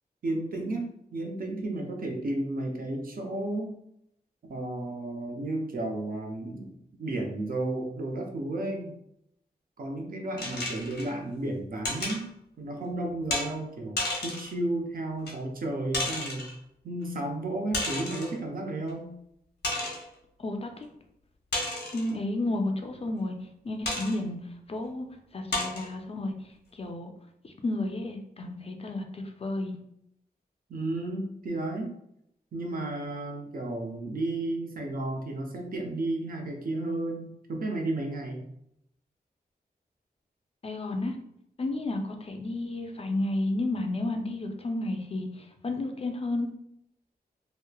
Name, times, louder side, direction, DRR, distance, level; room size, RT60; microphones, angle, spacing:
voice 1, 0.2-3.7 4.5-8.9 9.8-12.3 12.6-16.5 16.8-19.1 30.7-31.9 32.5-38.5, right 2 dB, 60° right, 1 dB, 0.6 m, -33 dB
sound 1, 10.4-11.1 11.8-12.2 13.3-13.5 14.0-14.5 15.3-15.4 15.9-16.5 17.7-18.4 18.9-19.0 19.6-20.1 21.5-22.1 23.9-24.2 24.8-24.9 25.5-25.9, left 2 dB, 90° left, 0.8 m, -32 dB
voice 2, 20.4-20.9 21.9-23.4 23.6-24.4 24.7-25.1 25.3-27.1 27.4-29.7 40.6-41.2 41.6-46.5, left 2 dB, 35° left, 4 dB, 0.4 m, -32 dB
3.0 x 2.0 x 2.2 m, 0.76 s
wide cardioid pair, 75°, 17 cm